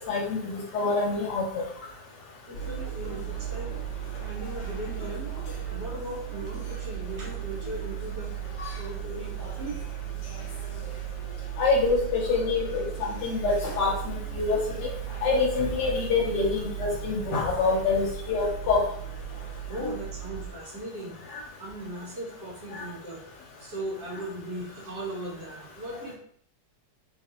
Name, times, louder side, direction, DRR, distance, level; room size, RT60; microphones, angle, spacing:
voice 1, 0.1-1.6 11.6-14.9 15.2-18.9 19.8-19.9 22.7-22.8, left 4 dB, 80° left, -2 dB, 1.3 m, -26 dB
sound 1, 2.5-20.5, right 9 dB, 55° left, 1.1 m, -36 dB
voice 2, 2.5-3.7 4.2-5.3 5.7-8.4 8.8-9.8 19.7-21.2 21.6-23.2 23.6-26.1, right 1 dB, 75° right, -5 dB, 1.9 m, -38 dB
4.1 x 2.4 x 2.8 m, 0.62 s
omnidirectional pair, 1.8 m